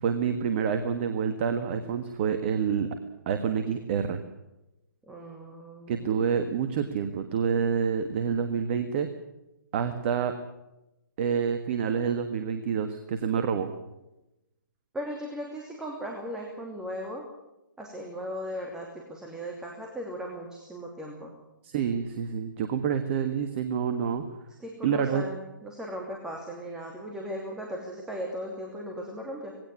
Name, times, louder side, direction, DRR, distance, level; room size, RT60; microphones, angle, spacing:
voice 1, 0.0-2.9 3.2-4.2 5.9-9.1 9.7-10.3 11.2-13.7 21.6-24.2 24.8-25.2, right 7 dB, 35° right, 8 dB, 1.5 m, -27 dB
voice 2, 5.1-6.3 14.9-17.3 17.8-21.3 24.6-29.5, equal, 5° right, 1 dB, 2.7 m, -37 dB
19.0 x 17.0 x 9.6 m, 0.95 s
figure-of-eight pair, 135°, 11 cm